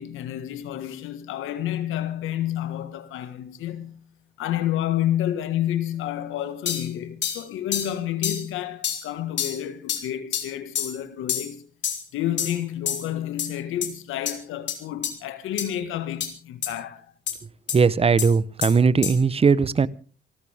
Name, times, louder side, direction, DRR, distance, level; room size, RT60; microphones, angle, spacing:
voice 1, 0.0-4.0 4.4-11.6 12.1-17.1, left 11 dB, 90° left, 1.7 m, -30 dB
sound 1, 6.7-6.9 7.2-7.4 7.7-7.9 8.2-8.4 8.8-9.0 9.4-9.6 9.9-10.0 10.3-10.5 10.8-10.9 11.3-11.5 11.8-12.0 12.4-12.6 12.9-13.1 13.4-13.5 13.8-13.9 14.3-14.4 14.7-14.8 15.0-15.1 15.6-15.7 16.2-16.3 16.6-16.7 17.3-17.4 17.7-17.8 18.2-18.3 18.6-18.7 19.0-19.2, left 8 dB, 65° left, 3.5 m, -27 dB
voice 2, 17.7-19.9, right 5 dB, 30° right, 0.9 m, -19 dB
26.5 x 14.0 x 3.5 m
cardioid pair, 90°, 20 cm